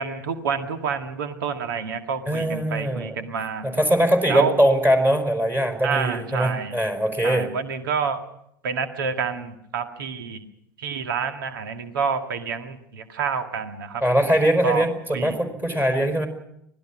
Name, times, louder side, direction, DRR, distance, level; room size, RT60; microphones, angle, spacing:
voice 1, 0.0-3.7 4.3-4.5 5.8-6.7 7.2-8.2 8.6-10.4 10.8-14.0 14.6-14.8 15.1-15.4, right 6 dB, 70° right, 7 dB, 2.0 m, -28 dB
voice 2, 2.2-3.3 3.6-7.5 14.0-16.3, equal, 15° right, 5 dB, 4.9 m, -21 dB
25.0 x 19.0 x 6.1 m, 0.77 s
figure-of-eight pair, 80°, 12 cm